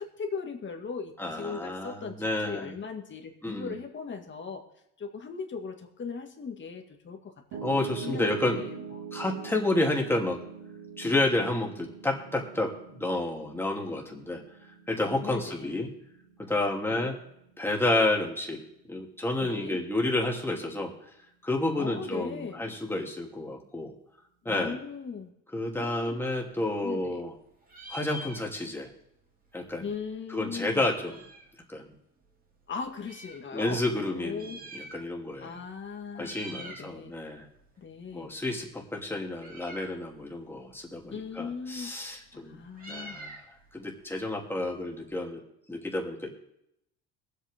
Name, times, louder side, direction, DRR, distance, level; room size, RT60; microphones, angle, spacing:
voice 1, 0.0-4.6 5.0-9.0 15.2-15.8 16.9-17.1 19.4-19.8 21.7-22.6 24.5-25.3 25.8-26.2 26.8-27.2 29.8-30.8 32.7-34.6 35.4-37.1 37.8-38.3 41.1-41.9 42.3-43.2, left 5 dB, 35° left, 3 dB, 2.2 m, -39 dB
voice 2, 1.2-2.7 3.4-3.8 7.6-8.6 9.1-10.4 11.0-14.4 14.9-15.9 16.4-17.1 17.6-18.6 18.9-20.9 21.4-23.9 24.4-24.8 25.5-27.3 27.9-28.9 29.5-29.9 30.3-31.1 31.7-31.9 33.5-35.6 36.2-37.5 38.1-42.6 42.9-43.4 43.7-45.4 45.7-46.3, left 2 dB, 5° left, 0 dB, 2.7 m, -30 dB
Piano, 7.5-19.7, right 7 dB, 75° right, 2.4 m, -44 dB
Meow, 26.4-27.4 27.6-28.9 29.2-29.3 29.5-31.6 32.2-33.4 34.2-35.4 35.6-35.9 36.1-36.9 37.3-45.1, right 1 dB, 25° right, 2.5 m, -47 dB
22.0 x 8.4 x 3.7 m, 0.79 s
cardioid pair, 115°, 33 cm